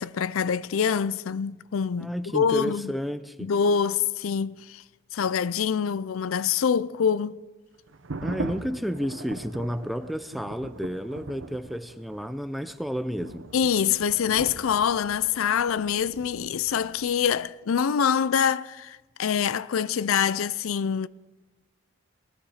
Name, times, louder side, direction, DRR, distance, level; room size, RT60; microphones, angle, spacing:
voice 1, 0.0-2.9 3.4-4.8 5.1-7.4 13.5-21.1, left 7 dB, 85° left, 0.4 m, -25 dB
voice 2, 1.9-3.5 8.2-13.5, equal, ahead, 0.5 m, -31 dB
sound 1, 7.9-17.3, right 2 dB, 70° right, 0.8 m, -41 dB
19.0 x 14.5 x 4.9 m
head